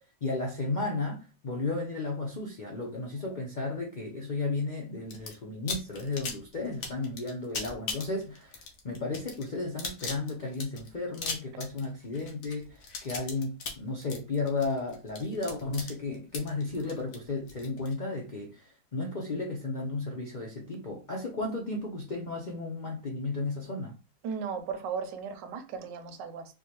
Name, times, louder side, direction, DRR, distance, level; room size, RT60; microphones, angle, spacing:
voice 1, 0.2-23.9, left 3 dB, 80° left, 0.4 m, -34 dB
sound 1, 5.1-5.3 5.7-17.9, left 4 dB, 55° left, 1.1 m, -38 dB
voice 2, 24.2-26.5, right 6 dB, 80° right, 1.3 m, -36 dB
4.5 x 2.3 x 2.8 m
omnidirectional pair, 1.9 m